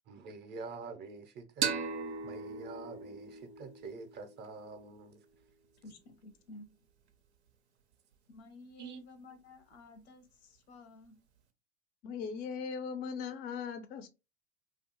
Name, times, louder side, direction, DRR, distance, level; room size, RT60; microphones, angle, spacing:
voice 1, 0.1-1.7 2.2-5.3 8.8-9.0, right 4 dB, 35° right, 0.5 m, -46 dB
sound 1, 1.6-5.0, right 6 dB, 85° right, 0.5 m, -38 dB
voice 2, 5.8-6.7 8.3-11.1, left 2 dB, 75° left, 0.7 m, -53 dB
voice 3, 12.0-14.1, left 6 dB, 30° left, 0.4 m, -39 dB
2.4 x 2.3 x 2.7 m
hypercardioid pair, 80°, 33 cm